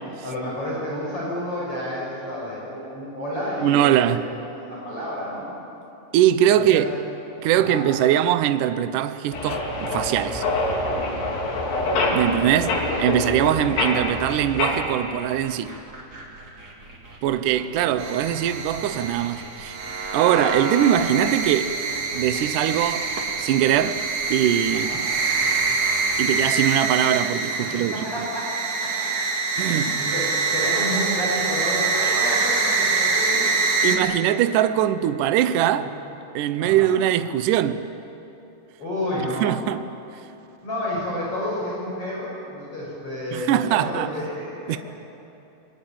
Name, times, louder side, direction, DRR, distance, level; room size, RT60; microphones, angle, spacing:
voice 1, 0.2-5.5 6.7-6.9 7.5-7.8 12.1-12.8 17.8-17.9 24.7-25.0 27.6-28.5 29.6-33.5 33.8-34.1 35.8-35.9 36.6-36.9 38.8-39.5 40.6-44.8, equal, 35° left, 6.7 m, -30 dB
voice 2, 3.6-4.3 6.1-6.9 7.4-10.4 12.1-15.7 17.2-19.8 20.1-21.8 22.2-23.1 23.4-24.0 24.3-25.0 26.2-27.9 29.6-30.0 33.8-35.9 36.3-37.8 39.2-39.8 43.3-44.1 44.7-44.8, right 11 dB, 80° right, 1.9 m, -21 dB
sound 1, 9.3-14.8, left 2 dB, 75° left, 5.2 m, -25 dB
sound 2, 11.7-26.5, right 1 dB, 25° right, 3.2 m, -43 dB
sound 3, 18.0-34.0, right 4 dB, 45° right, 3.0 m, -25 dB
28.5 x 22.0 x 8.9 m
omnidirectional pair, 4.8 m